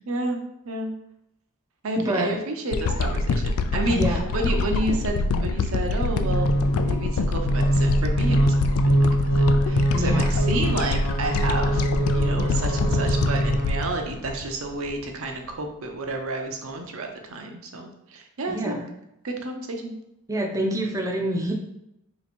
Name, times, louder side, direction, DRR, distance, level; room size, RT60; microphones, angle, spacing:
voice 1, 0.1-0.9 1.8-6.5 6.8-11.9 12.1-18.8 19.2-19.9, right 2 dB, 65° right, 3 dB, 0.6 m, -30 dB
voice 2, 2.1-2.4 3.9-4.3 9.9-10.3 18.5-18.9 20.3-21.5, right 1 dB, 15° right, 1 dB, 0.5 m, -26 dB
sound 1, 2.7-15.0 15.5-15.6, left 3 dB, 80° left, 0.3 m, -25 dB
sound 2, 6.1-14.1, right 1 dB, 40° left, 1.0 m, -24 dB
3.4 x 2.9 x 4.3 m, 0.83 s
head